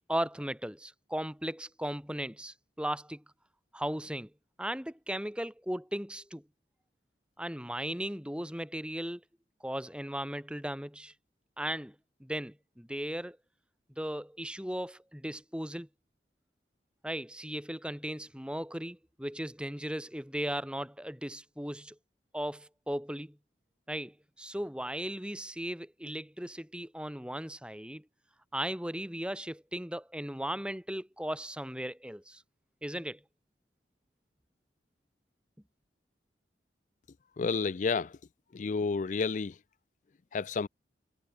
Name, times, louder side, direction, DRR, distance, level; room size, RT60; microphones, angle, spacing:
voice 1, 0.1-3.2 3.7-4.3 4.6-6.4 7.4-9.2 9.6-11.1 11.6-11.9 12.2-13.4 14.0-15.9 17.0-22.0 22.3-23.4 23.9-28.0 28.5-32.4 32.8-33.2, equal, 5° right, 4.5 m, -37 dB
voice 2, 37.4-38.1 38.5-39.5 40.3-40.7, left 4 dB, 45° left, 0.4 m, -30 dB
head